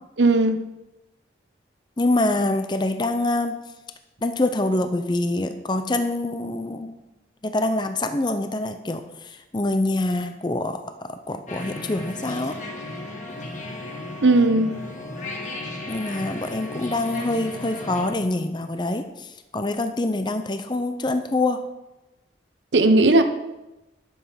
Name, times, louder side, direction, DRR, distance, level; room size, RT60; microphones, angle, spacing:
voice 1, 0.2-0.6 14.2-14.8 22.7-23.2, right 2 dB, 70° right, 8 dB, 0.8 m, -16 dB
voice 2, 2.0-3.6 4.2-6.9 7.4-9.0 9.5-10.8 11.1-12.6 15.9-19.3 19.5-21.6, left 2 dB, 25° left, 8 dB, 0.6 m, -25 dB
sound 1, 11.5-18.1, left 2 dB, 40° left, 1.6 m, -35 dB
11.5 x 7.0 x 5.6 m, 1.0 s
head